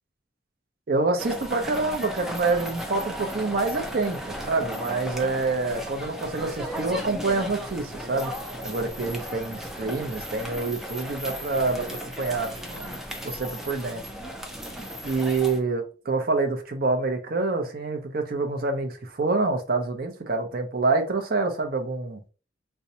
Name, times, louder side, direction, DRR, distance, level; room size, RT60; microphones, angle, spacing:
voice 1, 0.9-8.3 8.6-13.0 13.2-14.0 15.0-22.2, right 3 dB, 55° right, 0.6 m, -27 dB
sound 1, 1.2-15.6, equal, ahead, 0.5 m, -35 dB
4.1 x 2.3 x 2.7 m
head